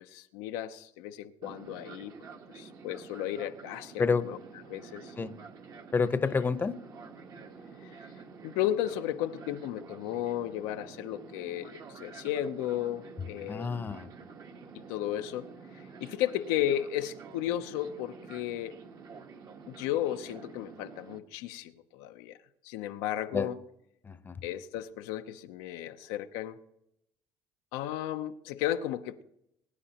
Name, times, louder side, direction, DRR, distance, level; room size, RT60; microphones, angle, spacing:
voice 1, 0.0-2.1 2.5-4.4 4.7-5.1 7.8-7.9 8.4-14.0 14.9-15.5 16.0-18.7 19.7-22.3 22.6-23.6 24.4-26.6 27.7-29.2, left 12 dB, 85° left, 8 dB, 0.7 m, -34 dB
Fixed-wing aircraft airplane, 1.4-21.2, right 5 dB, 45° right, 1.2 m, -49 dB
voice 2, 5.9-6.7 13.5-14.1 23.3-23.5 24.1-24.4, left 5 dB, 25° left, 12 dB, 0.8 m, -28 dB
22.0 x 9.8 x 2.9 m, 0.77 s
supercardioid pair, 105°, 9 cm